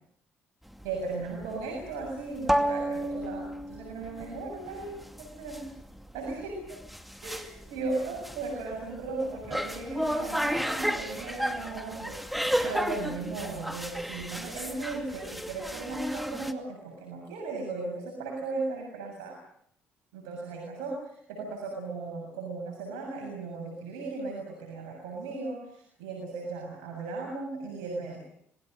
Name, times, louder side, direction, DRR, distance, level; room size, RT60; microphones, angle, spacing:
sound 1, 0.7-16.5, equal, ahead, 2.5 m, -33 dB
voice 1, 0.8-5.7 6.1-6.8 7.2-19.4 20.1-28.2, right 3 dB, 90° right, 0 dB, 7.1 m, -36 dB
27.0 x 20.5 x 6.7 m, 0.68 s
supercardioid pair, 75°, 5 cm